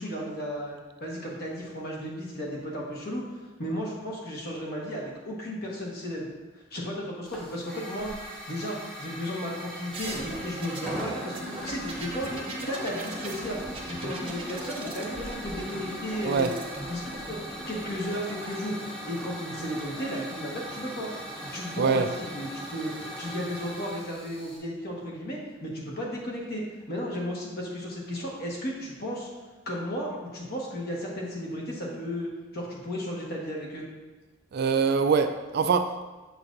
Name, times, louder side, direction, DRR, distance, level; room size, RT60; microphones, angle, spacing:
voice 1, 0.0-6.3 6.5-8.1 8.5-12.3 12.7-13.6 13.9-16.6 16.9-21.1 21.4-29.3 29.6-33.8, equal, 50° left, 1.4 m, -34 dB
Hiss / Fire, 7.2-24.6, equal, 5° left, 0.9 m, -40 dB
sound 1, 9.9-18.5 19.6-20.2, right 1 dB, 30° right, 0.8 m, -39 dB
voice 2, 21.8-22.1 34.5-36.0, right 5 dB, 50° right, 0.3 m, -24 dB
6.8 x 5.8 x 2.6 m
head